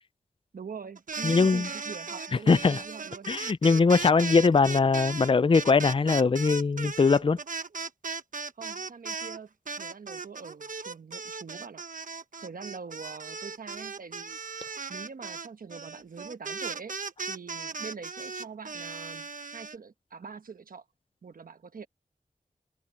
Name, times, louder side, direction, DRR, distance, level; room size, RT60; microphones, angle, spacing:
voice 1, 0.5-3.3 8.6-11.8 12.4-14.4 14.9-17.0 17.3-20.8 21.2-21.9, right 5 dB, 90° right, 1.2 m, -43 dB
sound 1, 1.0-9.4 9.7-19.7, right 4 dB, 65° right, 1.1 m, -37 dB
voice 2, 1.2-1.7 2.5-2.8 3.3-7.4, left 4 dB, 40° left, 0.5 m, -21 dB
wide cardioid pair, 65°, 14 cm